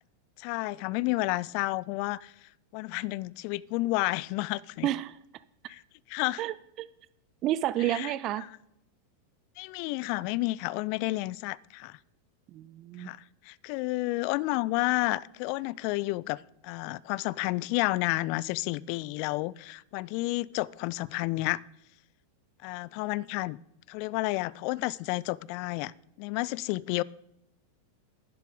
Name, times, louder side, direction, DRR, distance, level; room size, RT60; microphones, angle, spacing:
voice 1, 0.4-2.3 2.7-4.9 5.7-5.8 6.1-6.4 7.9-8.1 9.6-12.0 13.0-13.2 13.4-21.6 22.6-23.6 23.9-25.9 26.2-27.0, left 20 dB, 45° left, 23 dB, 0.3 m, -31 dB
voice 2, 4.8-5.2 6.4-6.9 7.4-8.5 12.5-13.1, right 13 dB, 35° right, 16 dB, 0.4 m, -30 dB
11.5 x 11.0 x 3.7 m, 0.80 s
figure-of-eight pair, 90°, 0 cm